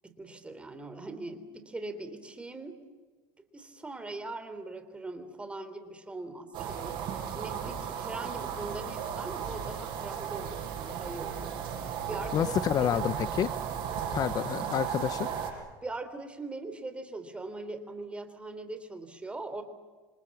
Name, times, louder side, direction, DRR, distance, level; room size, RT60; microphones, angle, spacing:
voice 1, 0.0-2.8 3.5-7.0 7.3-11.6 11.9-13.1 15.8-19.6, right 2 dB, 10° right, 9 dB, 3.4 m, -41 dB
sound 1, 6.5-15.5, right 8 dB, 50° right, 7.9 m, -35 dB
voice 2, 12.3-13.5 14.1-15.3, left 10 dB, 40° left, 13 dB, 0.9 m, -28 dB
28.0 x 25.5 x 7.3 m, 1.4 s
supercardioid pair, 125°, 10 cm